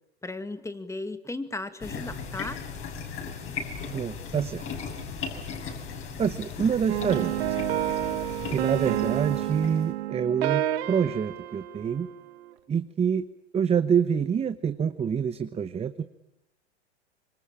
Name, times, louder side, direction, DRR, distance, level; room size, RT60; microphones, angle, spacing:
voice 1, 0.2-2.6, left 2 dB, 10° left, 10 dB, 2.0 m, -35 dB
sound 1, 1.8-9.9, left 5 dB, 40° left, 6.6 m, -37 dB
voice 2, 3.9-4.7 6.2-7.3 8.5-12.1 12.7-13.3 13.5-16.0, right 7 dB, 20° right, 11 dB, 0.9 m, -26 dB
sound 2, 6.9-12.5, right 13 dB, 65° right, 1.8 m, -30 dB
26.0 x 23.5 x 8.8 m, 0.89 s
hypercardioid pair, 95°, 33 cm